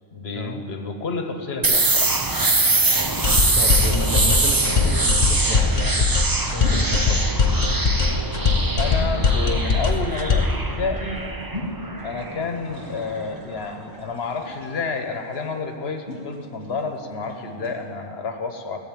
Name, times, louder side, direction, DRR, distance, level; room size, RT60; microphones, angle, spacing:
voice 1, 0.1-2.2 8.8-11.3 12.0-18.8, left 4 dB, 75° left, 6 dB, 1.3 m, -29 dB
sound 1, 1.6-13.3, right 2 dB, 20° right, 0.8 m, -23 dB
sound 2, 3.2-10.6, left 4 dB, 50° left, 1.0 m, -21 dB
voice 2, 3.6-6.1 6.5-7.2, left 1 dB, 15° left, 3 dB, 0.9 m, -31 dB
sound 3, 4.6-17.8, left 1 dB, 45° right, 3.8 m, -41 dB
16.0 x 8.1 x 8.9 m, 2.6 s
omnidirectional pair, 1.1 m